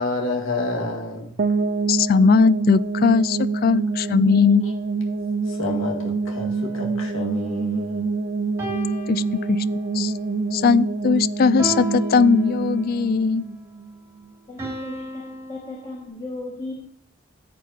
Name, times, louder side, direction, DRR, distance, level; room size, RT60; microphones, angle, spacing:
voice 1, 0.0-1.3 5.5-8.1, left 2 dB, 80° left, 1 dB, 1.9 m, -29 dB
sound 1, 1.4-14.3, right 4 dB, 45° right, 0.5 m, -26 dB
voice 2, 1.9-4.6 9.1-9.2 9.5-9.6 9.9-10.1 10.5-13.4, left 5 dB, 45° left, 18 dB, 0.3 m, -19 dB
sound 2, 6.3-8.0 8.6-10.0 11.6-13.0 14.6-16.1, right 2 dB, 15° right, 3.2 m, -35 dB
voice 3, 14.5-16.7, left 2 dB, 25° left, -3 dB, 2.0 m, -36 dB
14.0 x 8.3 x 2.9 m, 0.69 s
head